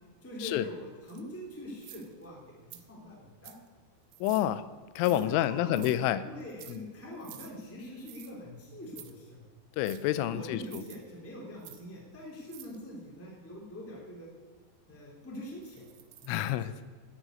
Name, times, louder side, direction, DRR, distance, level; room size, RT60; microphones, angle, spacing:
voice 1, 0.2-3.6 5.1-9.4 10.1-14.3 14.9-15.8 16.2-16.4, left 1 dB, 5° left, -3 dB, 2.7 m, -44 dB
sound 1, 1.1-1.2 1.8-2.3 2.7-2.8 3.5-3.7 4.1-4.5 5.0-5.3 5.7-6.0 6.4-6.8 7.2-7.5 8.0-8.3 8.9-9.1 9.9-10.0 10.7-11.0 11.6-11.8 12.5-12.8 15.6-16.5, right 14 dB, 90° right, 3.6 m, -50 dB
voice 2, 4.2-4.7 5.0-6.2 6.7-6.8 9.8-10.8 16.3-16.7, left 13 dB, 85° left, 14 dB, 3.0 m, -28 dB
13.0 x 9.4 x 7.9 m, 1.4 s
omnidirectional pair, 5.8 m